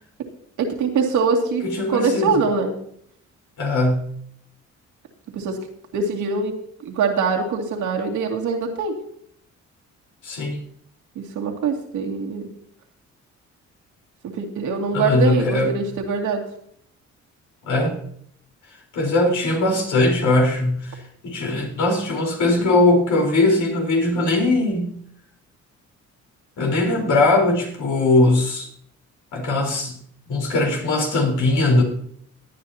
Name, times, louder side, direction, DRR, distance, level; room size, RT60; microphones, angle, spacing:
voice 1, 0.6-1.6 1.9-2.8 5.3-5.6 5.9-6.5 6.8-9.0 11.2-12.4 14.2-16.4 22.6-22.7, right 4 dB, 80° right, 1 dB, 2.4 m, -23 dB
voice 2, 1.6-2.3 3.6-4.1 10.2-10.6 14.9-15.7 17.7-18.0 18.9-25.0 26.6-28.7 29.3-30.0 30.3-31.8, left 2 dB, 75° left, 0 dB, 4.2 m, -20 dB
18.5 x 9.6 x 2.9 m, 0.65 s
cardioid pair, 90°, 30 cm